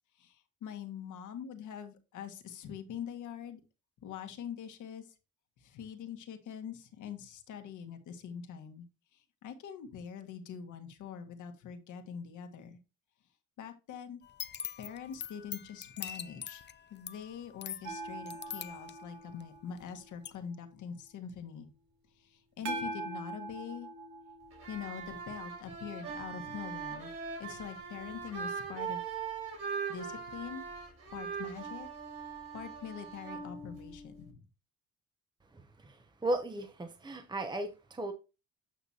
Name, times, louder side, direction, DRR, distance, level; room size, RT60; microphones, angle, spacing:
voice 1, 0.2-3.6 4.0-5.1 5.6-8.8 9.1-12.8 13.6-14.2 14.8-16.6 16.9-21.7 22.2-23.9 24.7-27.1 27.4-29.0 29.9-30.6 31.1-31.9 32.5-34.4, left 8 dB, 75° left, 1.5 m, -44 dB
sound 1, 14.2-19.9 20.2-20.3, left 8 dB, 35° left, 0.5 m, -43 dB
sound 2, 17.8-20.7 22.6-25.9 28.7-28.8, right 3 dB, 70° right, 2.0 m, -43 dB
sound 3, 24.5-34.3, right 6 dB, 55° right, 5.0 m, -41 dB
voice 2, 35.5-38.1, right 1 dB, 15° right, 0.8 m, -36 dB
9.0 x 5.9 x 2.8 m
cardioid pair, 90°, 30 cm